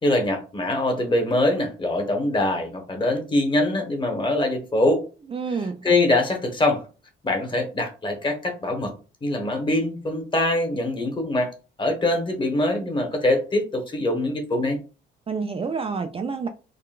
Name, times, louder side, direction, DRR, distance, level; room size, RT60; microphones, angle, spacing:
voice 1, 0.0-5.0 5.8-6.8 7.2-8.9 9.2-11.5 11.8-14.8, left 2 dB, 25° left, 1.1 m, -23 dB
voice 2, 5.3-5.8 15.3-16.5, right 5 dB, 30° right, 0.3 m, -28 dB
3.7 x 2.2 x 2.4 m
cardioid pair, 90°, 20 cm